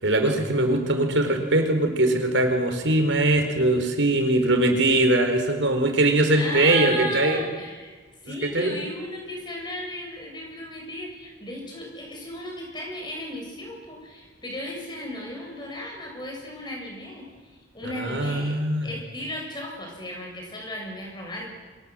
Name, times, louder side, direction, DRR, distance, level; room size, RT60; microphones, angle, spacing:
voice 1, 0.0-7.4 8.5-8.7 18.0-18.9, right 1 dB, 85° right, 5 dB, 4.6 m, -21 dB
voice 2, 6.3-8.0 8.2-17.3 17.7-18.6 18.8-21.6, left 1 dB, 25° left, 0 dB, 7.4 m, -35 dB
30.0 x 25.0 x 7.8 m, 1.3 s
head